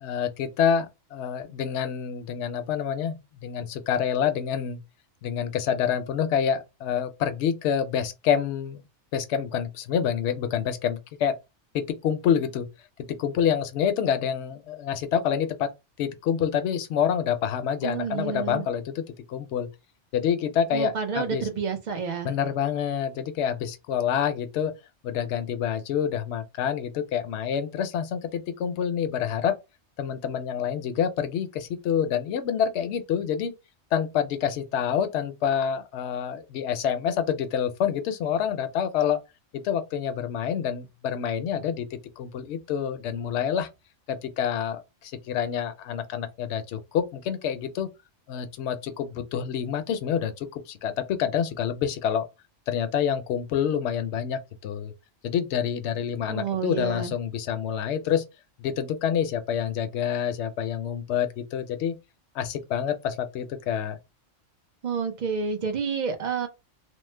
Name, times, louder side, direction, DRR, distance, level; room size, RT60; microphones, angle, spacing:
voice 1, 0.0-4.8 5.2-8.8 9.1-11.3 11.7-12.7 13.1-15.7 16.0-19.0 19.3-19.7 20.1-21.5 22.2-24.7 25.0-29.5 30.0-33.5 33.9-39.2 39.5-43.7 44.1-47.9 48.3-52.3 52.7-54.9 55.2-58.2 58.6-62.0 62.3-64.0, left 8 dB, 70° left, 0.8 m, -27 dB
voice 2, 17.8-18.7 20.7-22.3 56.3-57.1 64.8-66.5, right 6 dB, 45° right, 0.6 m, -29 dB
3.0 x 2.0 x 3.2 m
omnidirectional pair, 1.2 m